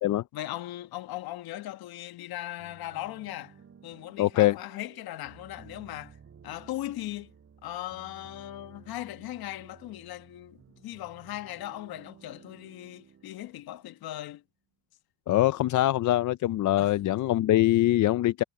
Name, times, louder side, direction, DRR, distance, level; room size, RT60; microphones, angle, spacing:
voice 1, 0.3-3.5 3.8-6.1 6.4-7.3 7.6-14.4 16.8-16.9, left 15 dB, 65° left, 1.3 m, -38 dB
sound 1, 2.6-14.3, right 7 dB, 35° right, 6.2 m, -55 dB
voice 2, 4.2-4.6 15.3-18.4, left 14 dB, 50° left, 0.6 m, -23 dB
cardioid pair, 115°, 39 cm